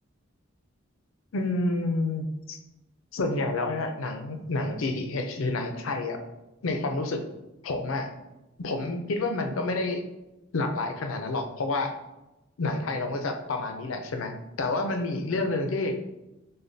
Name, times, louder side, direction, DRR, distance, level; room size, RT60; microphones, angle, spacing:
voice 1, 1.3-2.6 3.1-6.2 6.6-7.2 7.6-8.1 8.6-10.0 10.5-11.9 12.6-15.9, left 2 dB, 85° left, 5 dB, 0.5 m, -29 dB
6.5 x 2.2 x 2.6 m, 0.98 s
head